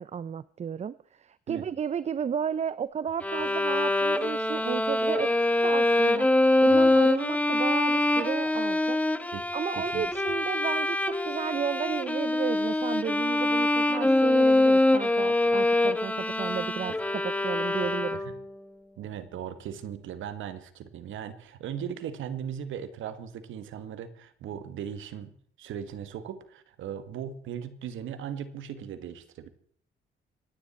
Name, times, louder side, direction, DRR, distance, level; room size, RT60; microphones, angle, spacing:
voice 1, 0.0-5.3 5.6-6.3 6.6-18.2, right 7 dB, 35° right, 18 dB, 0.5 m, -33 dB
Bowed string instrument, 3.2-18.5, left 1 dB, 5° left, 1.1 m, -24 dB
voice 2, 9.7-10.1 18.1-18.2 19.0-29.5, right 9 dB, 80° right, 12 dB, 1.6 m, -38 dB
25.5 x 10.0 x 4.3 m, 0.63 s
cardioid pair, 90°, 20 cm